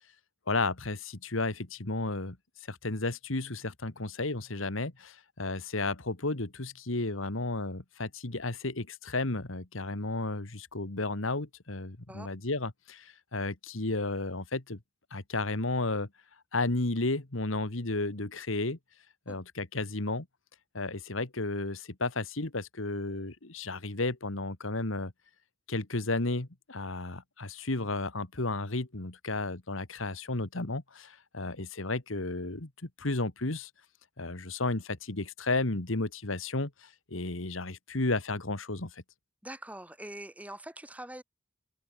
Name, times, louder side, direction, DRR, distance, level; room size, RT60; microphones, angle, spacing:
voice 1, 0.5-2.4 2.7-14.8 15.1-16.1 16.5-18.8 19.3-20.3 20.7-25.1 25.7-33.7 34.2-38.9, left 2 dB, 80° left, 2.0 m, -33 dB
voice 2, 39.4-41.2, right 1 dB, 5° right, 7.7 m, -43 dB
head